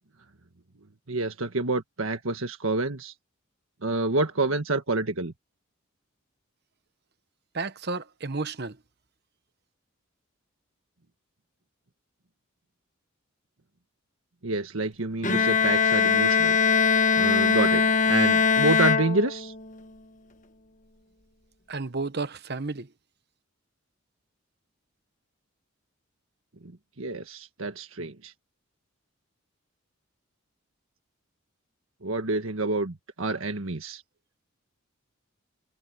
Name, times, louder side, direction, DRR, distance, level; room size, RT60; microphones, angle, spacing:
voice 1, 1.1-3.1 3.8-5.3 14.4-16.6 17.2-19.5 26.6-26.7 27.0-28.3 32.0-34.0, right 2 dB, 75° right, 1.6 m, -28 dB
voice 2, 7.5-8.8 21.7-22.9, right 3 dB, 50° right, 1.1 m, -32 dB
Bowed string instrument, 15.2-19.7, left 5 dB, 35° left, 1.2 m, -22 dB
head